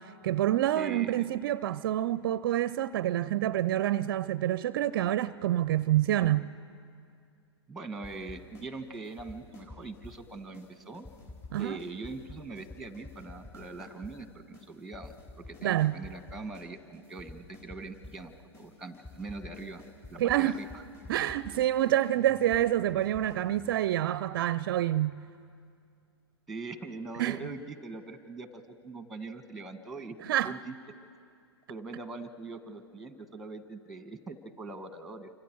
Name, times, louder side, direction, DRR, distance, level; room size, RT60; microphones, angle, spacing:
voice 1, 0.0-6.5 11.5-11.8 15.6-15.9 20.2-20.6 21.1-25.1 27.2-27.4 30.2-30.6, right 13 dB, 50° right, 0.5 m, -27 dB
voice 2, 0.7-1.3 7.7-11.1 11.6-19.8 20.1-20.8 26.5-31.0 31.7-35.3, right 3 dB, ahead, 1.4 m, -42 dB
sound 1, 8.0-8.7 8.9-10.2 10.5-10.7 10.9-14.2 14.5-14.7 14.9-16.7 16.9-18.2 18.5-18.7 18.9-24.0, left 2 dB, 20° left, 4.1 m, -49 dB
29.0 x 25.5 x 4.6 m
hypercardioid pair, 120°, 14 cm